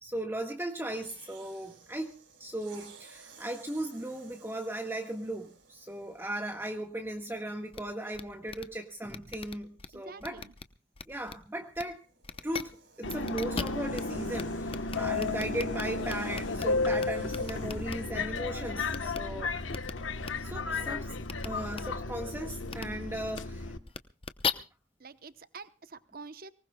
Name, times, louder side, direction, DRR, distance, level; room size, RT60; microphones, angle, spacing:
voice 1, 0.0-2.1 2.4-10.4 11.1-12.0 12.4-12.7 13.0-19.6 20.4-21.2 21.4-23.7, right 1 dB, 10° right, 3 dB, 1.6 m, -37 dB
sound 1, 0.9-6.5 7.3-7.5 11.4-18.1, right 4 dB, 80° right, 7.3 m, -56 dB
sound 2, 7.7-7.8 8.1-8.2 8.5-8.6 9.1-9.9 10.2-10.6 10.9-11.3 11.7-11.8 12.2-12.6 13.1-14.0 14.3-14.4 14.7-16.6 17.0-17.9 18.9-19.2 19.7-19.9 20.2-20.3 21.2-21.5 21.7-21.8 22.7-22.8 23.3-23.4 23.9-24.5, left 5 dB, 30° left, 0.8 m, -37 dB
voice 2, 9.9-10.5 25.0-26.5, right 4 dB, 50° right, 12 dB, 0.9 m, -47 dB
Subway metro underground, 13.0-23.8, left 3 dB, 90° left, 1.2 m, -33 dB
24.5 x 19.5 x 2.3 m, 0.34 s
head